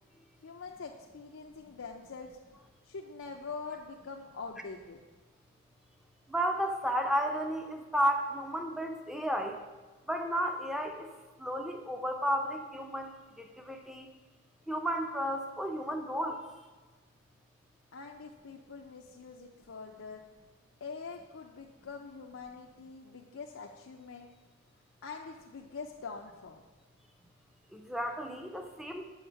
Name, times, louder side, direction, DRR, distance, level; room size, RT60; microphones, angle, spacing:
voice 1, 0.4-2.4 2.8-5.0 17.9-20.2 20.8-24.3 25.0-26.6, left 4 dB, 70° left, 1 dB, 0.5 m, -44 dB
voice 2, 6.3-9.6 10.1-11.1 11.4-13.1 13.4-14.1 14.7-16.4 27.7-29.1, equal, ahead, 4 dB, 0.6 m, -33 dB
7.1 x 5.4 x 6.9 m, 1.3 s
head